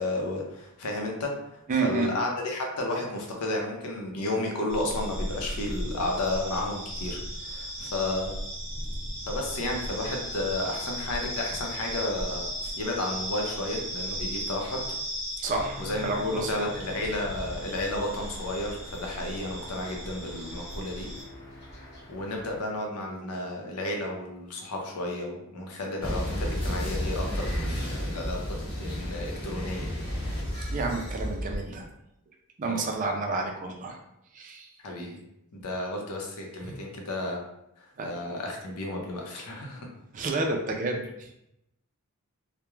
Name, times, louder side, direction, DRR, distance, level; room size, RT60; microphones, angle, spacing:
voice 1, 0.0-8.4 9.3-12.5 12.8-14.9 15.8-21.1 22.1-29.9 32.6-32.9 34.8-35.2 35.5-37.4 37.8-39.9, left 2 dB, 90° left, 1 dB, 0.6 m, -32 dB
voice 2, 1.7-2.1 15.4-16.7 30.7-31.9 32.6-34.0 34.3-34.7 36.6-36.8 38.0-38.1 40.1-41.3, right 3 dB, 35° right, 2 dB, 0.3 m, -30 dB
sound 1, 4.7-21.2, equal, 10° right, 0.7 m, -36 dB
sound 2, 15.5-22.6, equal, 50° left, 0.9 m, -44 dB
sound 3, 26.0-31.6, equal, 20° left, 0.8 m, -32 dB
2.3 x 2.1 x 3.0 m, 0.81 s
head